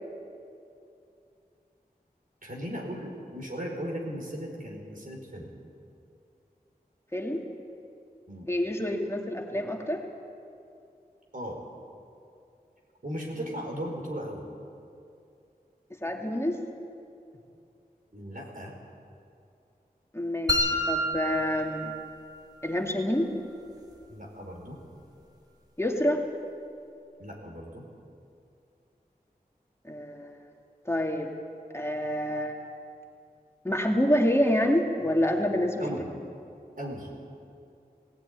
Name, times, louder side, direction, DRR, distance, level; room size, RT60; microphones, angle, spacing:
voice 1, 2.4-5.5 8.3-8.5 11.3-11.6 13.0-14.5 18.1-18.7 24.1-24.8 27.2-27.8 35.8-36.1 36.8-37.1, equal, 60° right, -1 dB, 4.8 m, -37 dB
voice 2, 7.1-7.4 8.5-10.0 16.0-16.6 20.1-21.9 22.6-23.3 25.8-26.2 29.8-30.4 30.9-31.3 31.7-32.6 33.6-35.9, left 1 dB, 15° left, 1 dB, 2.6 m, -27 dB
sound 1, 20.5-22.5, equal, 25° right, 2.8 m, -29 dB
19.0 x 17.0 x 9.7 m, 2.6 s
wide cardioid pair, 60°, 16 cm